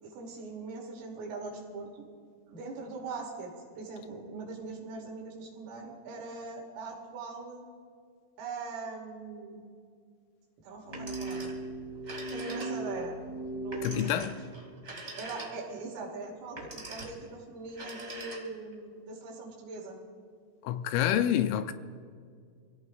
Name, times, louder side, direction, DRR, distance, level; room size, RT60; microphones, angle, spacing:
voice 1, 0.0-2.1 2.5-7.6 8.4-9.6 10.6-11.5 12.3-13.2 13.5-14.3 15.2-20.0, right 3 dB, 80° right, 5.1 m, -41 dB
sound 1, 10.8-14.1, right 2 dB, 20° left, 1.8 m, -37 dB
Telephone, 10.8-11.7 12.0-13.0 13.7-15.8 16.4-17.3 17.7-18.7, right 2 dB, 45° right, 0.8 m, -43 dB
voice 2, 13.8-14.4 20.6-21.7, left 11 dB, 80° left, 3.1 m, -28 dB
27.5 x 16.5 x 2.4 m
omnidirectional pair, 5.8 m